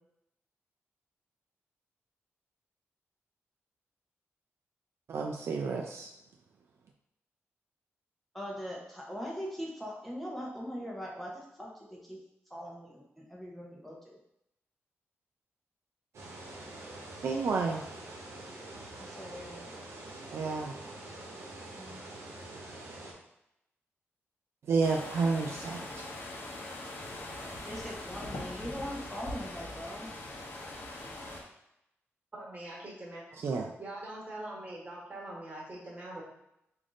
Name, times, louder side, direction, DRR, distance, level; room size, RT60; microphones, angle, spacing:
voice 1, 5.1-6.1 17.2-17.8 20.3-20.7 24.7-26.0 33.4-33.7, right 4 dB, 65° right, 1 dB, 0.3 m, -30 dB
voice 2, 8.3-12.2 12.5-14.2 19.0-19.6 21.8-22.0 27.6-30.1, equal, ahead, -3 dB, 0.7 m, -41 dB
sound 1, 16.1-23.1, right 2 dB, 80° right, 0.9 m, -45 dB
sound 2, 24.8-31.4, left 1 dB, 50° left, 0.7 m, -42 dB
voice 3, 32.3-33.2 33.6-36.2, right 1 dB, 30° right, -5 dB, 1.5 m, -43 dB
3.4 x 2.5 x 3.7 m, 0.81 s
cardioid pair, 95°, 5 cm